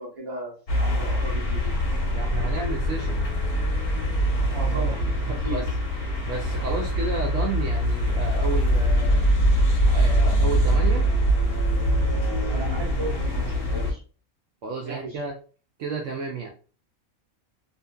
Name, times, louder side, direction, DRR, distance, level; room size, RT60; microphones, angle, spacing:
voice 1, 0.0-1.7 4.5-5.0 5.4-5.7 7.0-7.1 12.5-14.0 14.8-15.2, right 1 dB, 25° right, -5 dB, 1.1 m, -36 dB
sound 1, 0.7-13.9, equal, 50° left, 0.9 m, -23 dB
voice 2, 2.1-3.3 5.2-5.7 6.2-9.3 9.9-11.1 14.6-15.3 15.8-16.5, right 3 dB, 70° right, 0 dB, 0.9 m, -31 dB
2.7 x 2.4 x 2.2 m, 0.38 s
omnidirectional pair, 1.4 m